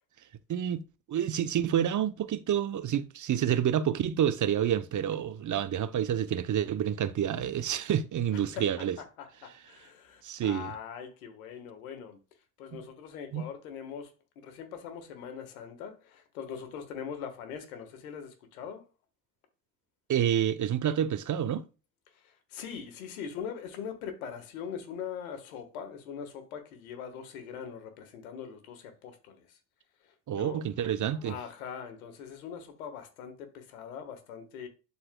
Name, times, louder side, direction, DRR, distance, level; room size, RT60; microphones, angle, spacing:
voice 1, 0.5-0.8 1.1-9.0 10.2-10.7 12.7-12.8 13.3-13.5 20.1-21.6 30.3-31.4, right 9 dB, 45° right, 0.8 m, -28 dB
voice 2, 9.0-12.2 12.6-14.1 14.4-18.8 22.1-29.6 30.0-30.6 31.0-34.7, left 7 dB, 90° left, 1.5 m, -42 dB
12.0 x 4.1 x 2.2 m
hypercardioid pair, 50°, 41 cm